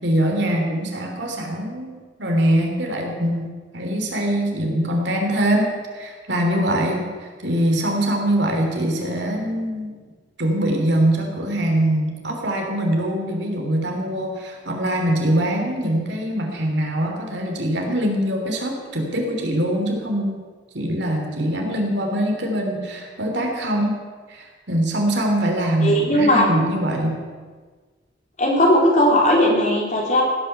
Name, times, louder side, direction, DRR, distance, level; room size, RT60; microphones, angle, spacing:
voice 1, 0.0-3.5 3.7-9.9 10.4-20.4 20.7-24.0 24.3-27.2, right 1 dB, 65° right, 2 dB, 3.2 m, -23 dB
voice 2, 25.8-26.5 28.4-30.2, left 1 dB, 40° left, -1 dB, 3.4 m, -17 dB
17.0 x 10.0 x 6.9 m, 1.5 s
head